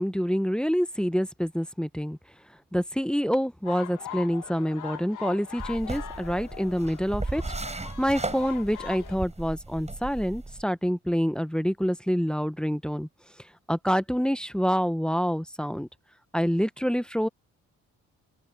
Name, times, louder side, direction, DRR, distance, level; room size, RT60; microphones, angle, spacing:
voice 1, 0.0-2.2 2.7-13.1 13.7-15.9 16.3-17.3, equal, 5° left, 1.2 m, -27 dB
sound 1, 3.7-9.2, left 9 dB, 65° left, 1.8 m, -41 dB
sound 2, 5.6-10.6, right 2 dB, 20° right, 5.9 m, -36 dB
open air
supercardioid pair, 60°, 33 cm